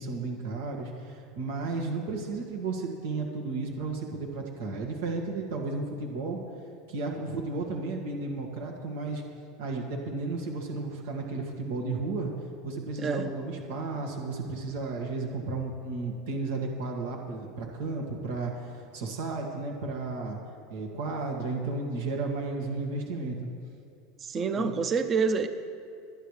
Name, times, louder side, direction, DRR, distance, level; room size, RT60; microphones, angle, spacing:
voice 1, 0.0-6.4 6.9-9.2 9.6-12.3 12.6-20.4 20.7-23.5 24.6-24.7, right 3 dB, 80° right, 1 dB, 1.9 m, -33 dB
voice 2, 13.0-13.3 24.2-25.5, right 5 dB, 30° right, 9 dB, 0.8 m, -27 dB
27.5 x 9.2 x 3.3 m, 2.6 s
supercardioid pair, 120°, 0 cm